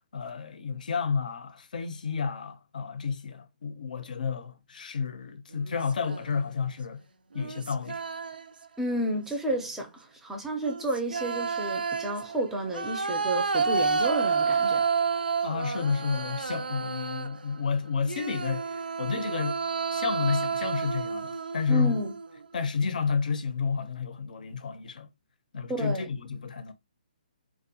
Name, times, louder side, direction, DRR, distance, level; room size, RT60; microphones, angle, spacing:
voice 1, 0.1-7.0 7.3-8.0 15.4-19.6 19.9-22.0 22.5-25.1 25.5-26.7, left 5 dB, 60° left, 0.6 m, -30 dB
sound 1, 5.6-6.4 7.4-8.6 9.0-9.6 10.6-17.5 18.1-22.4, right 5 dB, 85° right, 0.3 m, -30 dB
voice 2, 8.8-14.8 21.7-22.1 25.7-26.1, right 1 dB, 5° right, 0.5 m, -31 dB
2.5 x 2.2 x 2.7 m
hypercardioid pair, 150°, 5 cm